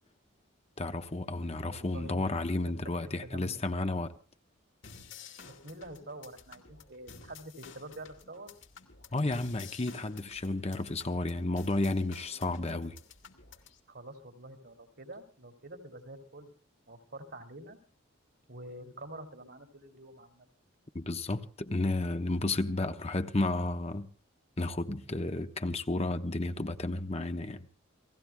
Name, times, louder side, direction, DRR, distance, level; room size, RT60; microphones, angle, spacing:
voice 1, 0.8-4.1 9.1-13.0 20.9-24.1 24.6-27.7, left 2 dB, 30° left, 1.0 m, -32 dB
voice 2, 1.6-2.3 2.7-2.8 3.2-3.6 5.4-8.5 13.9-16.5 16.9-17.8 18.5-20.5, right 1 dB, 55° right, 2.8 m, -47 dB
sound 1, 4.8-13.8, left 6 dB, 65° left, 2.4 m, -52 dB
30.0 x 18.0 x 2.2 m
head